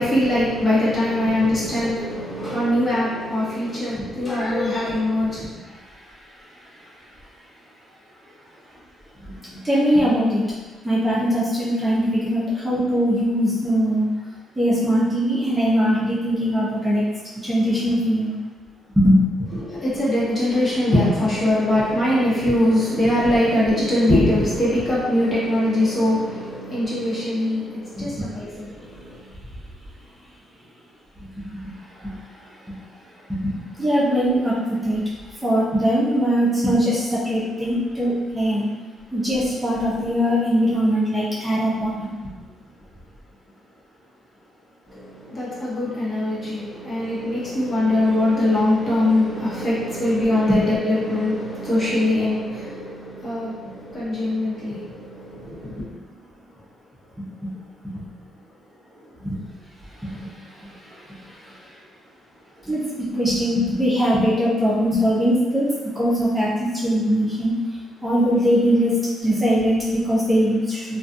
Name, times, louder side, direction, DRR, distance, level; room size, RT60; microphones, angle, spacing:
voice 1, 0.0-5.5 19.6-29.2 44.9-55.8, left 1 dB, 35° left, -8 dB, 1.1 m, -22 dB
voice 2, 9.2-10.4 10.8-14.1 14.6-17.0 17.4-18.3 19.0-19.6 31.4-31.7 32.0-32.1 33.3-35.0 35.4-38.7 39.1-42.3 57.9-58.0 59.2-59.4 60.0-60.3 60.6-61.6 62.7-67.6 68.0-68.9 69.2-71.0, equal, 15° right, -8 dB, 0.7 m, -21 dB
2.4 x 2.3 x 2.6 m, 1.3 s
cardioid pair, 90°, 0 cm